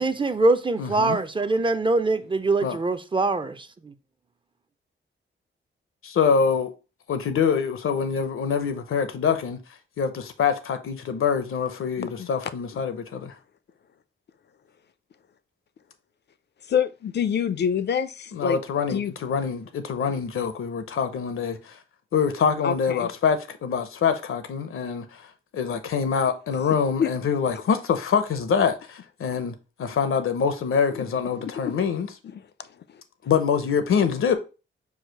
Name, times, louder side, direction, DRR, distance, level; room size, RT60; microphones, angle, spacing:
voice 1, 0.0-3.7, right 2 dB, 25° right, 0.4 m, -23 dB
voice 2, 0.8-1.2 2.6-2.8 6.0-6.7 7.1-9.6 10.0-13.3 18.3-21.7 22.1-25.2 25.5-29.5 29.8-32.1 33.3-34.4, left 6 dB, 85° left, 0.7 m, -25 dB
voice 3, 12.0-12.3 16.7-18.6 18.9-19.1 22.6-23.1 27.0-27.1 30.9-31.0 31.4-31.7, left 8 dB, 55° left, 0.4 m, -26 dB
4.8 x 2.4 x 4.5 m
wide cardioid pair, 105°, 21 cm